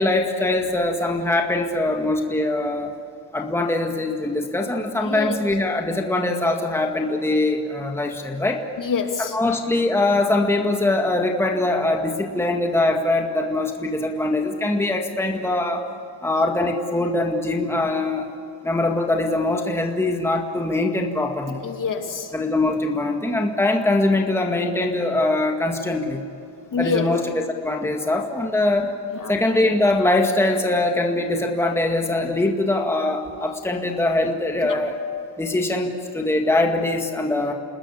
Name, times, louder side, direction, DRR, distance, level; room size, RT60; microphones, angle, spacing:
voice 1, 0.0-2.9 3.3-8.6 9.2-15.8 16.2-18.3 18.6-21.6 22.3-26.2 26.8-28.9 29.3-35.0 35.4-37.5, left 2 dB, 5° left, 1 dB, 1.9 m, -22 dB
voice 2, 5.0-5.4 8.8-9.3 21.6-22.3 26.7-27.1 29.2-29.3 34.6-34.8, left 5 dB, 50° left, 4 dB, 2.9 m, -26 dB
29.0 x 20.0 x 8.5 m, 2.7 s
cardioid pair, 130°, 42 cm